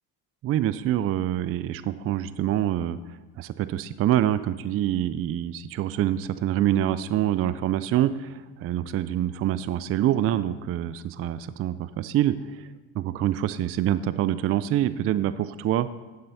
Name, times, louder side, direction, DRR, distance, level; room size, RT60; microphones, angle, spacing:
voice 1, 0.4-12.7 12.9-15.9, right 12 dB, 35° right, 14 dB, 0.4 m, -26 dB
9.6 x 7.6 x 5.6 m, 1.3 s
supercardioid pair, 95°, 42 cm